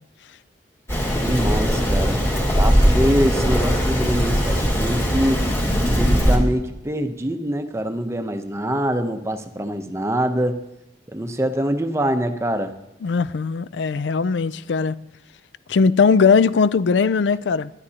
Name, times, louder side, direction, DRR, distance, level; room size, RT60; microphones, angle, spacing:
Rain, 0.9-6.4, equal, 15° left, 1.9 m, -19 dB
voice 1, 1.1-2.2 2.6-5.4 6.0-10.6 11.1-12.7, equal, 15° right, 0.7 m, -24 dB
voice 2, 13.0-15.0 15.7-17.7, left 5 dB, 80° left, 0.4 m, -19 dB
19.5 x 12.0 x 2.9 m
head